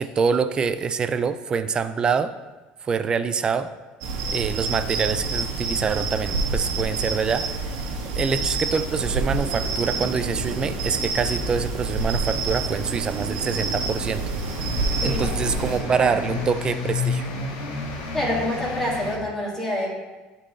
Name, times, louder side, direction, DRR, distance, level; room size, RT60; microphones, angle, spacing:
voice 1, 0.0-2.3 2.8-3.7 4.3-7.6 8.2-14.2 15.0-17.3, right 6 dB, 25° right, 11 dB, 0.4 m, -25 dB
sound 1, 4.0-15.8, right 3 dB, 80° right, 1.3 m, -28 dB
sound 2, 9.0-16.5, right 5 dB, 45° right, 0.8 m, -37 dB
sound 3, 10.3-19.2, left 4 dB, 90° left, 1.4 m, -33 dB
voice 2, 15.0-15.3 16.0-16.1 18.1-19.9, left 1 dB, 10° left, -5 dB, 2.2 m, -26 dB
11.0 x 4.2 x 3.2 m, 1.2 s
cardioid pair, 135°, 3 cm